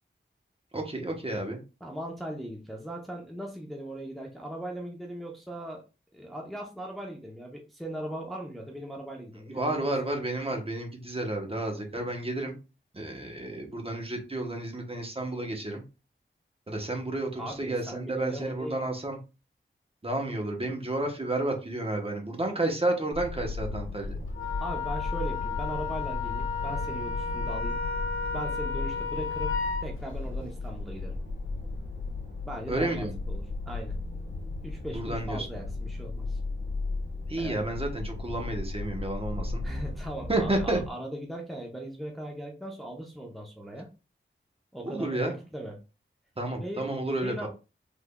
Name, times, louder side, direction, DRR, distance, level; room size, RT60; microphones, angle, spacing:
voice 1, 0.7-1.6 9.5-12.5 12.9-15.8 16.7-19.2 20.0-24.2 32.7-33.1 34.9-35.5 37.3-39.6 40.3-40.8 44.8-45.4 46.4-47.5, right 2 dB, 30° right, 2 dB, 0.9 m, -31 dB
voice 2, 1.8-5.8 6.1-9.9 17.4-18.8 24.6-27.8 28.3-31.2 32.5-34.0 34.6-36.4 37.4-37.7 39.6-43.9 44.7-45.8 46.6-47.5, right 1 dB, ahead, -1 dB, 0.7 m, -39 dB
sound 1, 23.1-40.9, left 3 dB, 60° left, 1.2 m, -35 dB
Wind instrument woodwind instrument, 24.3-29.9, left 5 dB, 75° left, 0.6 m, -33 dB
3.5 x 3.1 x 2.2 m, 0.31 s
wide cardioid pair, 75°, 21 cm